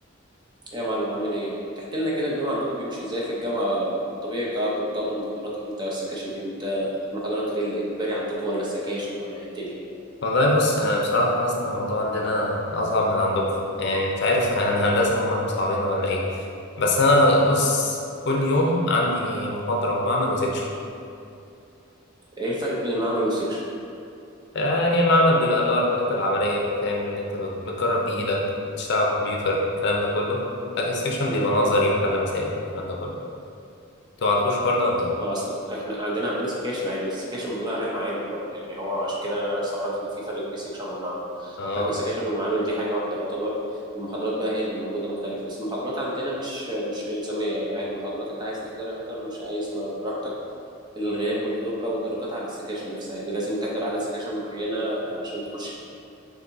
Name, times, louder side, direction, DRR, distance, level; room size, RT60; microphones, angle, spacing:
voice 1, 0.7-5.3 5.5-9.8 22.4-23.6 31.2-31.5 35.2-43.5 43.9-50.3 51.0-55.7, equal, 20° right, -5 dB, 0.7 m, -29 dB
voice 2, 10.2-13.5 13.8-16.4 16.8-18.0 18.3-20.6 24.5-28.4 28.8-30.4 30.8-33.1 34.2-35.1 41.6-41.9, left 1 dB, 55° left, -1 dB, 0.6 m, -22 dB
6.6 x 2.6 x 2.6 m, 2.6 s
head